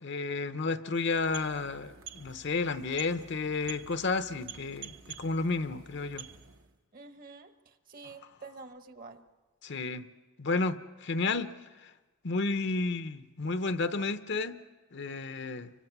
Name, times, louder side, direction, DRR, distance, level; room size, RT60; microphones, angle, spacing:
voice 1, 0.0-6.2 9.6-10.1 10.4-11.5 11.8-11.9 12.2-14.6 14.9-15.7, left 3 dB, 55° left, 0.8 m, -32 dB
sound 1, 1.0-6.8, right 8 dB, 65° right, 1.1 m, -49 dB
voice 2, 6.9-9.2, right 4 dB, 40° right, 1.2 m, -48 dB
30.0 x 24.5 x 6.0 m
head